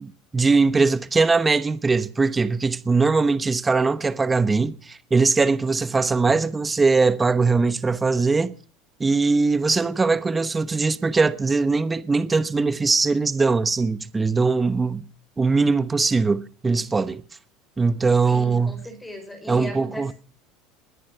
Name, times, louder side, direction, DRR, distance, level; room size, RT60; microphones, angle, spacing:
voice 1, 0.0-8.5 9.0-15.0 15.4-17.2 17.8-18.8 19.5-20.1, right 4 dB, 20° right, 1.0 m, -21 dB
voice 2, 18.3-20.1, left 1 dB, 10° left, 5.3 m, -37 dB
20.0 x 10.5 x 5.8 m
supercardioid pair, 105°, 0 cm